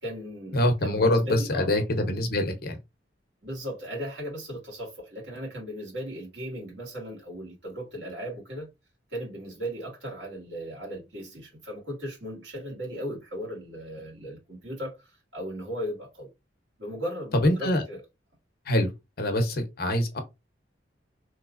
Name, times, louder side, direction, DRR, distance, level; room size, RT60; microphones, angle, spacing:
voice 1, 0.0-1.8 3.4-8.7 9.1-16.3 16.8-18.0, equal, 85° right, 2.2 m, -37 dB
voice 2, 0.5-2.8 17.4-17.8 18.7-18.9 19.2-20.2, left 1 dB, 55° left, 0.8 m, -24 dB
3.2 x 3.1 x 2.5 m
head